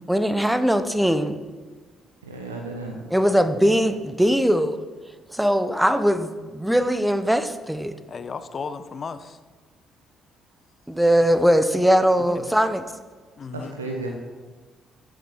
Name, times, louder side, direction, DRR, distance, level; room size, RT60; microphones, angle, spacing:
voice 1, 0.1-1.4 3.1-4.8 5.3-8.0 10.9-12.8, equal, 5° right, 11 dB, 1.1 m, -20 dB
voice 2, 2.2-3.1 13.5-14.1, right 2 dB, 80° right, 1 dB, 1.1 m, -33 dB
voice 3, 8.1-9.4 12.2-12.6 13.4-13.8, left 5 dB, 40° left, 12 dB, 0.8 m, -35 dB
14.5 x 7.6 x 5.6 m, 1.3 s
figure-of-eight pair, 45°, 0 cm